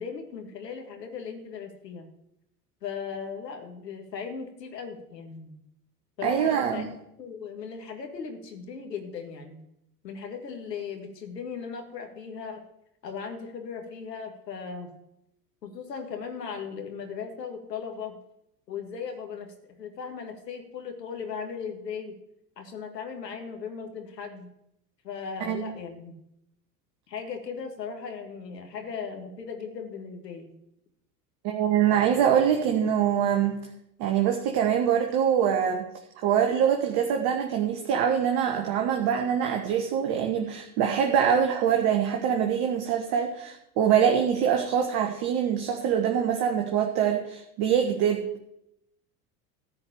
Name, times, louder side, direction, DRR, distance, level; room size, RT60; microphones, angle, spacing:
voice 1, 0.0-2.1 2.8-5.6 6.2-6.9 7.2-9.6 10.0-12.6 13.0-14.9 15.6-18.2 18.7-22.1 22.6-24.5 25.0-26.1 27.1-30.5, left 6 dB, 80° left, 4 dB, 2.0 m, -37 dB
voice 2, 6.2-6.9 25.4-25.7 31.4-33.6 34.0-35.8 36.2-48.5, right 8 dB, 50° right, 3 dB, 1.4 m, -24 dB
14.0 x 4.8 x 8.5 m, 0.80 s
figure-of-eight pair, 75°, 49 cm